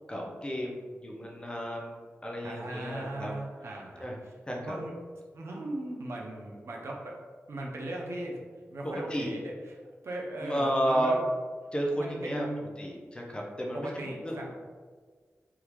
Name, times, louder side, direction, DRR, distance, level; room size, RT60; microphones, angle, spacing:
voice 1, 0.1-3.3 4.0-4.2 4.5-4.8 8.8-9.3 10.4-11.1 11.7-12.5 12.8-14.5, equal, 20° left, -1 dB, 0.5 m, -32 dB
voice 2, 2.4-4.1 4.6-4.9 5.3-7.1 7.5-8.4 8.7-9.5 10.0-11.2 12.0-12.6 13.7-14.5, right 1 dB, 70° right, -1 dB, 0.6 m, -37 dB
3.5 x 2.3 x 3.0 m, 1.5 s
wide cardioid pair, 100°, 5 cm